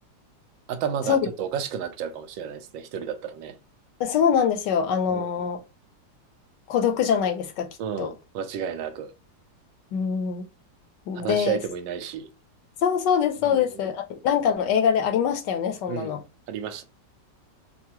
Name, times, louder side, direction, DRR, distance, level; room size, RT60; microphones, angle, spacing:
voice 1, 0.7-3.6 5.1-5.3 7.8-9.1 11.1-12.3 13.4-13.9 15.9-16.2 16.5-16.8, right 8 dB, 90° right, 1.3 m, -32 dB
voice 2, 4.0-5.6 6.7-7.7 8.0-8.1 9.9-10.5 11.1-11.6 12.8-16.2, left 7 dB, 75° left, 1.3 m, -23 dB
4.6 x 2.0 x 2.9 m
omnidirectional pair, 2.0 m